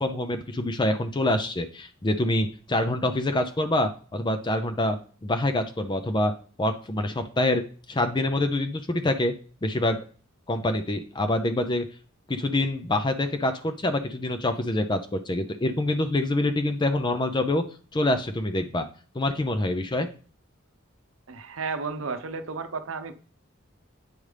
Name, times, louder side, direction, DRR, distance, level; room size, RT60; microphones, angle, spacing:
voice 1, 0.0-6.3 6.6-7.6 7.9-9.3 9.6-10.0 10.5-11.8 12.3-17.6 17.9-18.8 19.1-20.1, left 1 dB, 25° left, 7 dB, 0.5 m, -26 dB
voice 2, 21.3-23.1, right 4 dB, 90° right, 9 dB, 0.7 m, -33 dB
8.6 x 5.2 x 3.2 m, 0.39 s
head